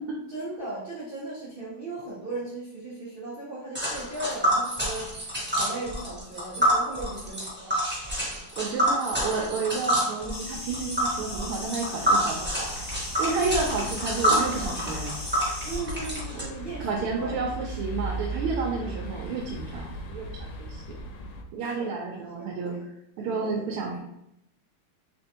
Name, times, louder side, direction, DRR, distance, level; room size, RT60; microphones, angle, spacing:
voice 1, 0.3-5.1 5.5-7.8 15.6-17.4 18.8-18.9 21.6-22.1 22.4-22.8 23.2-23.6, right 2 dB, 70° right, -9 dB, 0.5 m, -37 dB
Tick, 3.7-16.4, equal, 10° right, 0.6 m, -27 dB
voice 2, 8.6-12.7 13.2-15.1 16.4-16.5 16.8-21.0 21.5-22.7 23.2-24.0, right 4 dB, 90° right, -1 dB, 1.5 m, -31 dB
sound 1, 10.3-15.8, left 2 dB, 50° left, 1.5 m, -39 dB
sound 2, 10.5-21.4, right 1 dB, 80° left, 1.4 m, -38 dB
3.6 x 3.4 x 2.8 m, 0.81 s
omnidirectional pair, 2.4 m